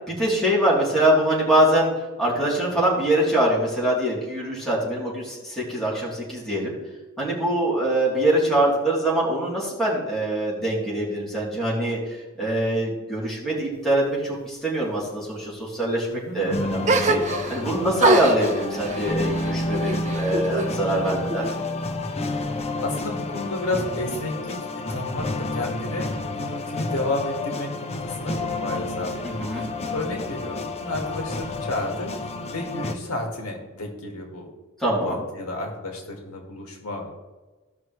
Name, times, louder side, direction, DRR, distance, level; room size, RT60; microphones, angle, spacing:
voice 1, 0.1-1.9 2.2-6.7 7.2-12.0 12.4-16.1 16.3-21.5 29.2-29.7 34.8-35.2, right 1 dB, ahead, -7 dB, 3.2 m, -23 dB
voice 2, 16.1-16.8 22.8-24.6 24.9-25.3 25.5-34.5 35.0-37.1, left 2 dB, 75° left, 1 dB, 2.1 m, -31 dB
sound 1, 16.5-33.0, left 2 dB, 30° left, 0.8 m, -30 dB
sound 2, 16.8-17.7 18.0-20.7 21.0-21.9, right 2 dB, 35° right, 0.7 m, -25 dB
16.5 x 5.9 x 3.2 m, 1.2 s
head